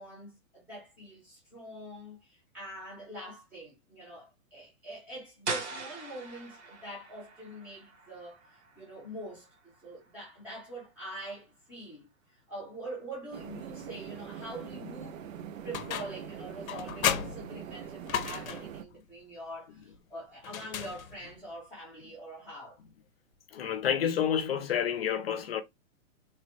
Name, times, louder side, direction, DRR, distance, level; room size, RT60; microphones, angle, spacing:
voice 1, 0.0-9.5 9.8-15.2 15.6-22.8, right 1 dB, 5° right, 0.6 m, -44 dB
sound 1, 5.5-11.1, right 4 dB, 55° right, 1.0 m, -42 dB
sound 2, 13.3-18.9, right 8 dB, 75° right, 0.5 m, -43 dB
sound 3, 15.7-16.3 16.7-18.8 20.4-21.4, left 9 dB, 90° left, 0.6 m, -34 dB
voice 2, 23.5-25.6, left 8 dB, 50° left, 0.6 m, -29 dB
3.3 x 2.1 x 2.9 m
hypercardioid pair, 175°, 40 cm